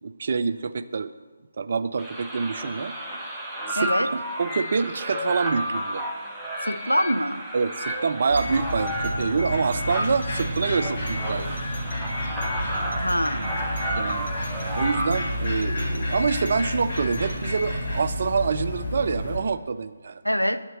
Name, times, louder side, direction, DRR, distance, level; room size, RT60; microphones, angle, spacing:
voice 1, 0.0-1.1 1.6-2.9 3.7-6.1 7.5-11.6 13.9-14.3 14.7-20.2, right 5 dB, 45° right, 12 dB, 0.3 m, -26 dB
sound 1, 2.0-15.5, right 1 dB, 5° right, 0.8 m, -32 dB
voice 2, 3.8-4.1 6.6-7.4 13.0-13.5 20.2-20.6, equal, 90° left, 12 dB, 0.4 m, -24 dB
sound 2, 8.3-17.8, left 2 dB, 65° left, 1.2 m, -39 dB
sound 3, 8.3-19.4, left 1 dB, 30° left, 2.1 m, -30 dB
9.2 x 3.6 x 6.4 m, 1.4 s
figure-of-eight pair, 150°, 0 cm